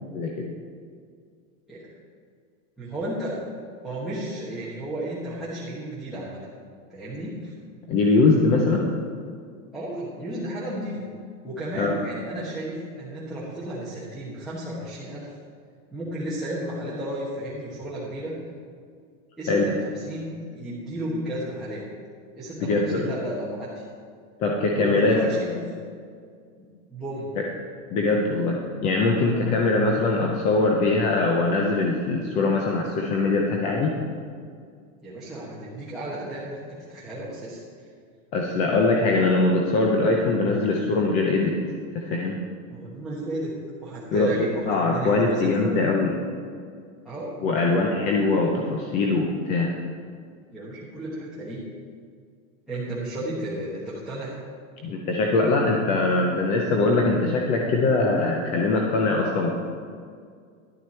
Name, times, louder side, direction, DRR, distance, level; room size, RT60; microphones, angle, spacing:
voice 1, 2.8-3.5 3.8-6.4 6.9-7.5 9.7-11.1 11.4-15.3 15.9-18.3 19.4-21.8 22.3-23.8 24.7-25.6 26.6-27.3 29.3-29.8 35.0-36.6 36.9-37.6 42.7-45.7 47.0-47.3 50.5-51.7 52.7-54.4, right 1 dB, ahead, -8 dB, 1.3 m, -33 dB
voice 2, 7.9-8.8 11.8-12.0 19.5-19.7 22.6-23.1 24.4-25.2 27.9-33.9 38.3-41.5 41.9-42.3 44.1-44.3 44.7-46.1 47.4-49.7 54.8-59.5, left 3 dB, 20° left, 0 dB, 0.4 m, -22 dB
11.5 x 9.2 x 4.3 m, 2.1 s
supercardioid pair, 165°, 40 cm